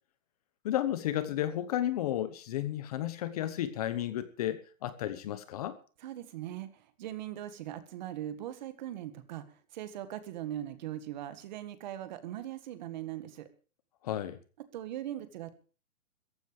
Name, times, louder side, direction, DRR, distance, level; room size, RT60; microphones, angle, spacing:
voice 1, 0.6-5.8 14.0-14.4, left 12 dB, 30° left, 1.1 m, -33 dB
voice 2, 6.0-13.5 14.7-15.5, right 12 dB, 35° right, 1.8 m, -40 dB
16.5 x 15.0 x 4.9 m
hypercardioid pair, 170°, 40 cm